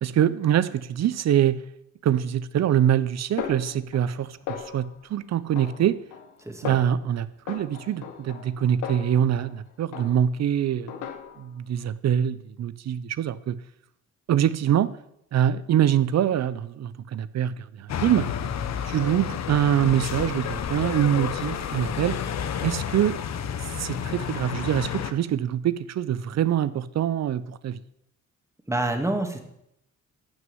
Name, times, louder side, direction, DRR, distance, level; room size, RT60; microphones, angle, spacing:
voice 1, 0.0-1.6 2.0-4.3 4.7-6.0 6.6-11.0 11.4-13.6 14.3-14.9 15.3-18.3 18.8-22.2 22.6-23.2 23.8-27.8, right 10 dB, 60° right, 16 dB, 0.8 m, -24 dB
Snare drum, 3.4-4.2 4.5-5.0 5.5-6.3 6.6-7.0 7.5-9.6 9.9-10.4 10.9-11.6, left 8 dB, 90° left, 1.5 m, -37 dB
voice 2, 6.4-6.8 28.7-29.4, right 2 dB, 10° right, 4 dB, 2.3 m, -27 dB
sound 1, 17.9-25.1, left 8 dB, 60° left, 1.1 m, -30 dB
12.0 x 6.2 x 9.3 m, 0.78 s
cardioid pair, 90°, 30 cm